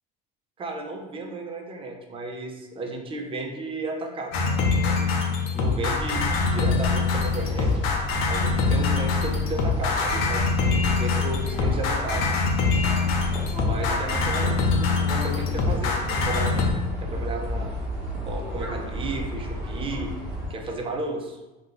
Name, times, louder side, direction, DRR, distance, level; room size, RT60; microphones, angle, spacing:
voice 1, 0.6-5.2 5.5-7.9 8.2-12.3 13.6-17.8 18.3-20.1 20.5-21.4, right 2 dB, 25° right, 2 dB, 0.5 m, -34 dB
sound 1, 4.3-16.7, left 4 dB, 70° left, 0.6 m, -24 dB
sound 2, 6.0-20.5, equal, 10° right, 1.0 m, -33 dB
2.5 x 2.3 x 3.8 m, 1.1 s
supercardioid pair, 120°, 21 cm